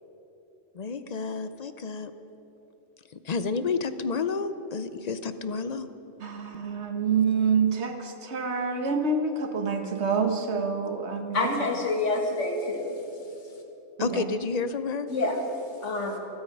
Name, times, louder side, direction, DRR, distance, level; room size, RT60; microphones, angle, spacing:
voice 1, 0.7-2.1 3.2-5.9 14.0-15.1, left 4 dB, 45° left, 11 dB, 0.6 m, -30 dB
voice 2, 6.2-11.5 14.0-14.2, right 5 dB, 65° right, 5 dB, 1.5 m, -27 dB
voice 3, 11.3-13.0 15.1-15.4 15.8-16.2, left 3 dB, 85° left, 2 dB, 2.2 m, -27 dB
26.5 x 8.8 x 5.3 m, 2.9 s
omnidirectional pair, 1.2 m